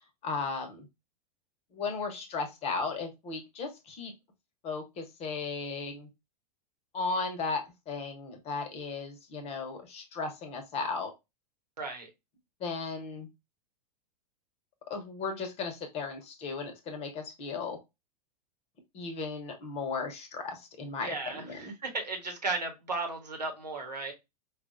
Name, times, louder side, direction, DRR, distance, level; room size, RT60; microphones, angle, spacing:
voice 1, 0.2-0.9 1.7-4.1 4.6-6.1 6.9-11.1 12.6-13.3 14.9-17.8 18.9-21.7, left 4 dB, 30° left, 6 dB, 0.9 m, -36 dB
voice 2, 11.8-12.1 21.0-21.4 21.8-24.1, right 3 dB, 85° right, 2 dB, 1.1 m, -34 dB
4.5 x 2.4 x 2.5 m, 0.22 s
figure-of-eight pair, 95°, 20 cm